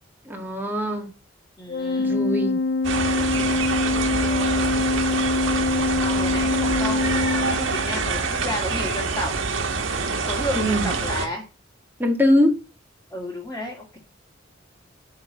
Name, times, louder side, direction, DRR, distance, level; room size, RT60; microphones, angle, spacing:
voice 1, 0.3-1.1 2.0-2.6 10.5-10.9 12.0-12.5, left 1 dB, 10° right, 1.7 m, -22 dB
voice 2, 1.6-2.2 4.1-4.7 6.0-9.3 10.1-11.4 13.1-14.0, left 1 dB, 10° left, 2.2 m, -32 dB
Organ, 1.7-8.2, left 3 dB, 55° left, 0.4 m, -24 dB
sound 1, 2.8-11.3, right 4 dB, 75° right, 1.5 m, -26 dB
11.5 x 3.9 x 7.4 m
head